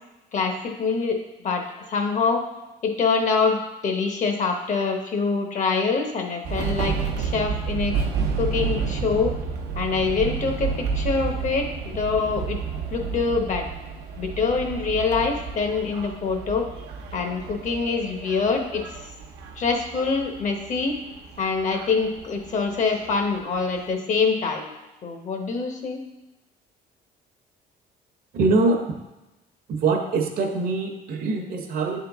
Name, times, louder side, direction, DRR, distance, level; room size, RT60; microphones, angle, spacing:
voice 1, 0.3-1.2 1.4-2.4 2.8-8.0 8.4-9.4 9.7-12.6 12.9-13.7 14.2-16.7 17.1-19.1 19.6-21.0 21.4-24.7 25.0-26.0, left 4 dB, 45° left, 4 dB, 0.9 m, -25 dB
sound 1, 6.4-23.9, right 5 dB, 90° right, 0.8 m, -31 dB
voice 2, 28.3-28.9 29.7-32.0, right 3 dB, 60° right, 4 dB, 0.9 m, -23 dB
7.4 x 3.8 x 3.5 m, 1.0 s
cardioid pair, 110°, 17 cm